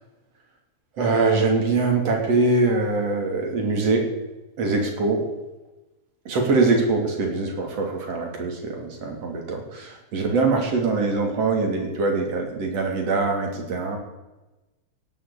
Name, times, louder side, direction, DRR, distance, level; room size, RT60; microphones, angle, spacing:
voice 1, 1.0-4.1 4.6-5.3 6.3-14.0, right 3 dB, 60° right, 2 dB, 3.7 m, -23 dB
17.5 x 7.1 x 8.3 m, 1.1 s
omnidirectional pair, 3.3 m